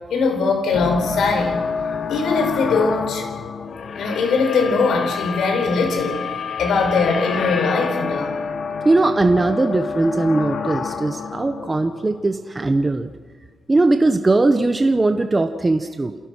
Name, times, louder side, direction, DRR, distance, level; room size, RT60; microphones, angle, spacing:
voice 1, 0.1-1.6 2.1-3.3 3.9-6.2 6.6-8.4, left 4 dB, 80° left, 3 dB, 5.3 m, -21 dB
sound 1, 0.7-12.8, left 5 dB, 50° left, 1.5 m, -28 dB
voice 2, 8.8-13.1 13.7-16.2, right 2 dB, 20° right, 7 dB, 1.1 m, -19 dB
28.0 x 17.5 x 6.3 m, 1.4 s
wide cardioid pair, 150°, 0 cm